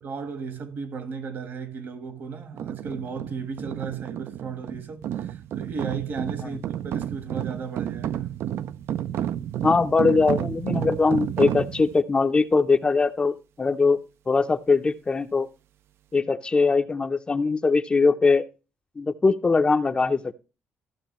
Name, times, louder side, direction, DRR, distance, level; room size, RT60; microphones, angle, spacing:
voice 1, 0.0-8.4, right 5 dB, 50° right, 1.3 m, -35 dB
sound 1, 2.5-12.0, right 10 dB, 65° right, 0.4 m, -31 dB
voice 2, 9.6-14.0 14.3-15.5 16.1-18.4 19.0-20.3, left 4 dB, 20° left, 0.5 m, -21 dB
15.0 x 6.1 x 3.0 m
cardioid pair, 135°, 4 cm